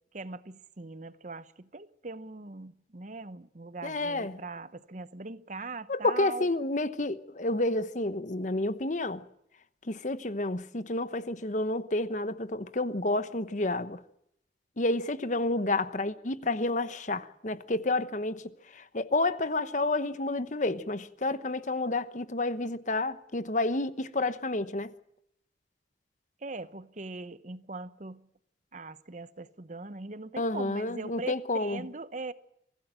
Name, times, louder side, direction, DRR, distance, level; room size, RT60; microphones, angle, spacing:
voice 1, 0.1-6.5 26.4-28.3 28.7-32.3, right 3 dB, 45° right, 0.9 m, -41 dB
voice 2, 3.8-4.4 5.9-9.2 9.8-14.0 14.8-18.4 18.7-24.9 30.4-31.8, left 2 dB, 45° left, 1.1 m, -30 dB
24.0 x 16.0 x 7.6 m
head